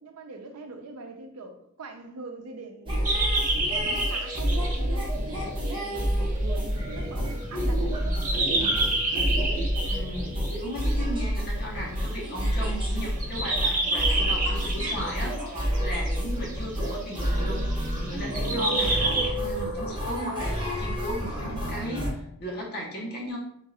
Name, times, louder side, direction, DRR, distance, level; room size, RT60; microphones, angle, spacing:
voice 1, 0.0-3.2 3.7-8.2, right 3 dB, 90° right, 0.6 m, -43 dB
sound 1, 2.9-22.1, equal, 20° right, 1.0 m, -29 dB
sound 2, 3.0-10.9 12.0-12.7 12.9-19.3, right 2 dB, 35° right, 1.0 m, -30 dB
voice 2, 9.8-23.4, equal, 45° left, 1.1 m, -36 dB
3.7 x 2.5 x 4.1 m
head